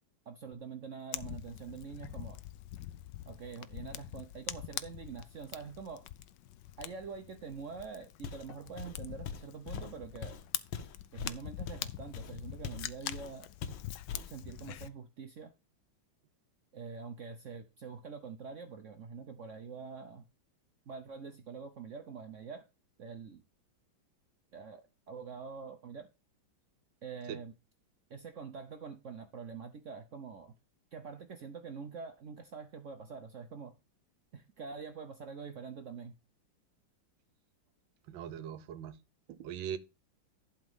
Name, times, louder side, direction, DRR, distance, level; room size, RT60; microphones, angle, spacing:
voice 1, 0.3-2.4 3.3-6.0 6.8-10.4 11.1-13.5 14.3-15.5 16.7-20.3 20.9-22.7 23.0-23.4 24.5-26.1 27.0-27.5 28.1-30.6 30.9-33.7 34.3-36.1, right 5 dB, 60° right, 0.8 m, -45 dB
Fire, 1.1-14.9, left 13 dB, 75° left, 1.2 m, -44 dB
Walk footsteps, 8.2-8.5 8.8-12.9 13.1-13.3 13.6-14.4, left 6 dB, 90° left, 1.8 m, -42 dB
voice 2, 38.1-39.0 39.3-39.8, right 9 dB, 80° right, 1.5 m, -40 dB
11.5 x 4.2 x 5.3 m
omnidirectional pair, 2.1 m